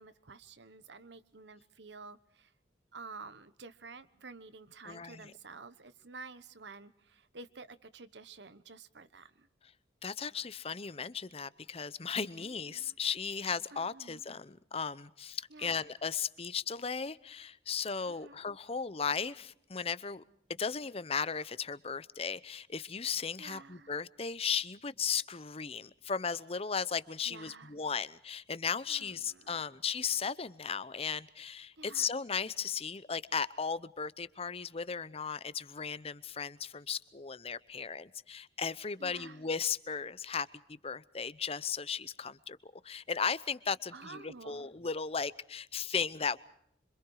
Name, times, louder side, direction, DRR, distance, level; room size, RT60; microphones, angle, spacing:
voice 1, 0.0-2.5 2.9-9.5 12.4-13.0 13.7-14.2 15.5-15.9 18.0-18.4 23.4-23.9 27.2-27.7 28.9-29.7 31.8-32.1 39.0-39.4 43.9-44.7, right 4 dB, 75° right, 1.2 m, -51 dB
voice 2, 4.8-5.3 10.0-20.2 20.6-46.4, left 6 dB, 35° left, 0.8 m, -36 dB
26.5 x 25.0 x 4.8 m
head